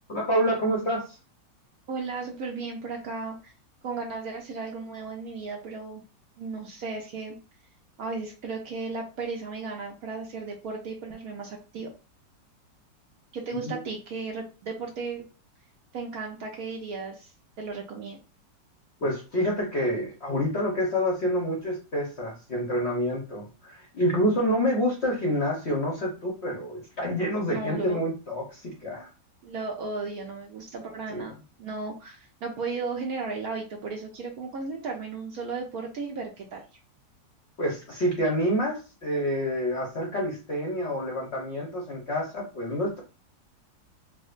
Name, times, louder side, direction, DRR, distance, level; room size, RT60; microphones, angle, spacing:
voice 1, 0.1-1.2 13.6-13.8 19.0-29.1 31.1-31.3 37.6-43.0, equal, 50° left, -1 dB, 0.8 m, -28 dB
voice 2, 1.9-3.5 3.8-6.0 6.4-7.4 8.0-11.9 13.3-15.2 15.9-17.3 17.6-18.2 27.4-28.0 29.4-36.6, right 4 dB, 65° right, 1 dB, 1.0 m, -35 dB
4.8 x 2.1 x 2.4 m, 0.32 s
omnidirectional pair, 2.0 m